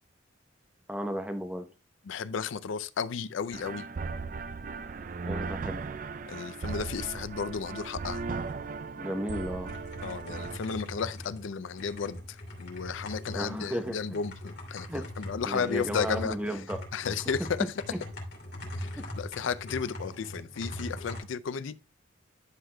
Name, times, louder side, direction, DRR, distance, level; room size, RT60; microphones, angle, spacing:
voice 1, 0.9-1.7 5.2-5.8 8.9-9.7 13.3-14.0 14.9-15.1 15.4-16.8, equal, 5° right, 0.7 m, -34 dB
voice 2, 2.0-3.9 6.3-8.2 10.0-16.4 16.9-17.6 18.7-21.8, left 6 dB, 75° left, 0.4 m, -33 dB
sound 1, 3.5-10.6, right 4 dB, 40° right, 0.3 m, -37 dB
sound 2, 9.6-21.2, left 1 dB, 55° left, 2.6 m, -41 dB
11.5 x 6.4 x 2.2 m
head